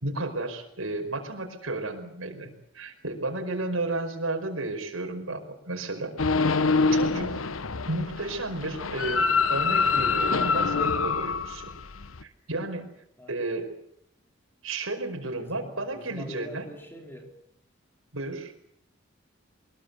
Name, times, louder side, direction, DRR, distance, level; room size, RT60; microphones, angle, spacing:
voice 1, 0.0-5.4 5.7-6.5 6.9-7.3 7.9-11.7 12.2-12.8 13.3-13.7 14.6-16.7 18.1-18.5, right 2 dB, 90° right, 2 dB, 5.0 m, -33 dB
sound 1, 6.2-12.2, left 4 dB, 85° left, 1.1 m, -25 dB
voice 2, 15.3-17.3, equal, 10° left, 3 dB, 4.4 m, -44 dB
23.0 x 21.5 x 8.2 m, 0.73 s
head